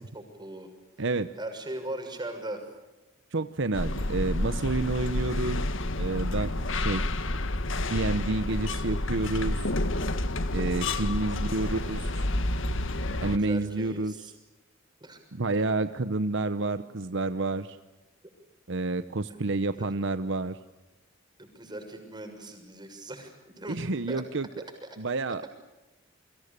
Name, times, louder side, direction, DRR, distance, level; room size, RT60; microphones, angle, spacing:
voice 1, 0.1-0.7 1.4-2.6 11.6-11.7 13.1-14.3 15.0-15.2 19.7-19.9 21.4-23.8 24.1-24.2, right 1 dB, 20° right, 5 dB, 6.6 m, -39 dB
voice 2, 1.0-1.3 3.3-5.7 6.0-7.1 7.9-9.7 10.5-12.3 13.2-14.1 15.3-17.8 18.7-20.6 23.7-24.5 25.0-25.5, right 2 dB, 65° right, 11 dB, 0.9 m, -29 dB
sound 1, 3.7-13.4, left 1 dB, 70° left, 1.7 m, -29 dB
30.0 x 24.5 x 6.9 m, 1.1 s
head